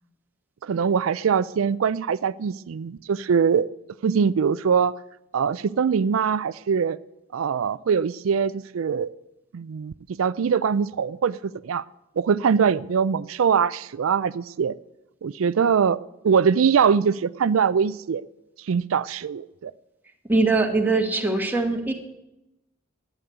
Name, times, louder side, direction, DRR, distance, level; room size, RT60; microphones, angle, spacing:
voice 1, 0.6-3.7 4.0-4.9 5.3-7.0 7.3-9.1 9.5-9.9 10.2-11.4 11.6-11.8 12.2-14.7 15.2-18.2 18.7-19.7, right 6 dB, 90° right, 17 dB, 0.4 m, -22 dB
voice 2, 20.3-21.9, right 3 dB, 10° right, 2 dB, 1.5 m, -22 dB
11.5 x 9.2 x 9.4 m, 0.90 s
head